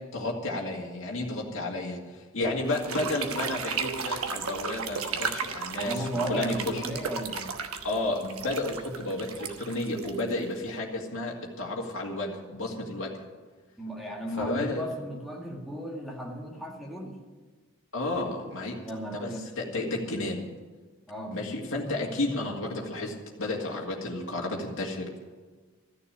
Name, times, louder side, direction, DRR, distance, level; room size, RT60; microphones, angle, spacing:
voice 1, 0.1-6.8 7.8-13.2 14.4-14.8 17.9-18.8 19.1-20.4 21.3-25.1, left 2 dB, 65° left, -2 dB, 2.1 m, -32 dB
sound 1, 2.7-10.7, right 5 dB, 80° right, 1.2 m, -34 dB
voice 2, 5.7-7.5 13.8-17.2 18.9-19.5 21.1-21.4, right 1 dB, ahead, -2 dB, 1.7 m, -35 dB
14.0 x 6.9 x 10.0 m, 1.3 s
head